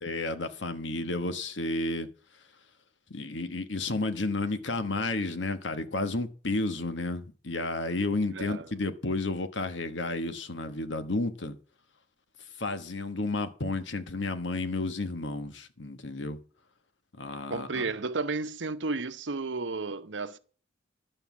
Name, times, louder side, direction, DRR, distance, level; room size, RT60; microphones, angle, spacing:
voice 1, 0.0-2.1 3.1-11.6 12.6-16.4 17.1-17.8, left 2 dB, 75° left, 1.3 m, -32 dB
voice 2, 8.3-8.7 17.5-20.4, right 3 dB, 75° right, 0.9 m, -32 dB
11.5 x 5.6 x 7.1 m
head